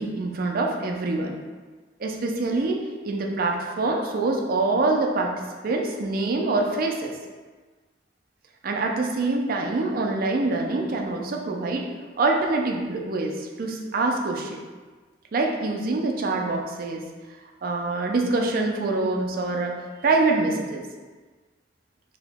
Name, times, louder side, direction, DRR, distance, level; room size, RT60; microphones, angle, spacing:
voice 1, 0.0-1.4 2.0-7.2 8.6-11.9 12.2-14.6 15.3-17.0 17.6-19.8 20.0-20.9, right 3 dB, 50° right, 1 dB, 0.4 m, -25 dB
3.0 x 2.8 x 3.4 m, 1.4 s
head